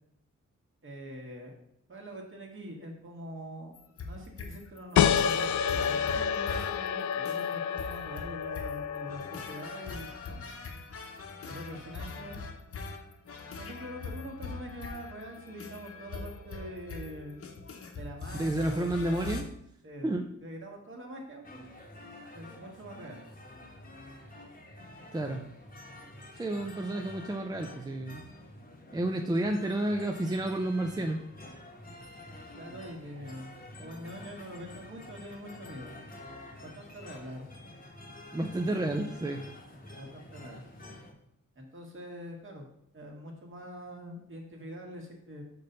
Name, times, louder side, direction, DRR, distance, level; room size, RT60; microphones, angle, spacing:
voice 1, 0.8-1.5 1.9-3.8 4.1-10.4 11.5-12.4 13.5-17.4 18.0-19.5 19.8-20.1 20.4-21.5 22.3-23.2 32.6-35.9 36.6-37.5 40.0-40.6 41.5-42.7 42.9-45.4, equal, 40° right, 1 dB, 1.5 m, -44 dB
sound 1, 3.7-19.4, left 4 dB, 50° left, 1.0 m, -42 dB
sound 2, 5.0-10.2, left 8 dB, 70° left, 0.4 m, -29 dB
voice 2, 18.3-19.4 20.0-20.2 25.1-25.4 26.4-28.2 28.9-31.2 38.3-39.4, right 1 dB, 15° right, 3 dB, 0.4 m, -30 dB
sound 3, 21.4-41.1, left 1 dB, 30° left, 1.0 m, -48 dB
5.3 x 4.0 x 5.5 m, 0.76 s
wide cardioid pair, 120°, 31 cm